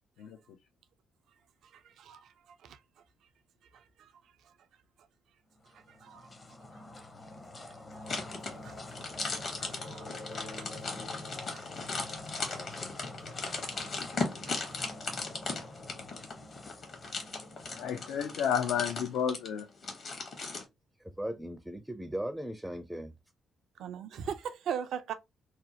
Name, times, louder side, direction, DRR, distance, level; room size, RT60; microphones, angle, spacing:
voice 1, 1.7-2.8 3.7-4.1 5.7-6.3 7.7-8.3 8.5-9.0 9.6-10.1 10.6-10.7 11.5-11.9 12.5-12.6 13.4-14.8 23.8-25.1, right 8 dB, 70° right, 0.3 m, -42 dB
sound 1, 5.6-18.9, left 2 dB, 35° left, 0.6 m, -46 dB
sound 2, 8.1-20.6, left 3 dB, 60° left, 1.1 m, -37 dB
voice 2, 17.8-19.7, left 8 dB, 75° left, 0.3 m, -31 dB
voice 3, 21.0-23.1, right 1 dB, 5° right, 0.4 m, -38 dB
2.7 x 2.0 x 2.7 m
supercardioid pair, 55°, 0 cm